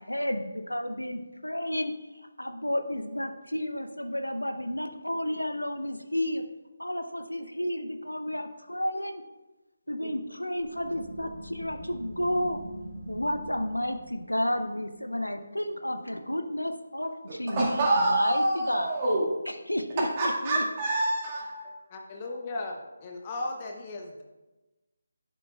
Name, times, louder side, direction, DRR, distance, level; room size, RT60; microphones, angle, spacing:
voice 1, 0.0-1.9 2.4-6.4 6.8-9.2 9.9-12.6 13.1-19.0 19.5-20.6, left 1 dB, 90° left, 8 dB, 0.6 m, -31 dB
sound 1, 10.6-15.9, right 1 dB, 80° right, 2.4 m, -44 dB
voice 2, 17.6-19.3 20.2-21.7, right 2 dB, 25° right, -4 dB, 1.8 m, -26 dB
voice 3, 21.9-24.2, left 2 dB, 25° left, 2 dB, 0.7 m, -36 dB
11.0 x 7.0 x 2.3 m, 1.1 s
figure-of-eight pair, 150°, 0 cm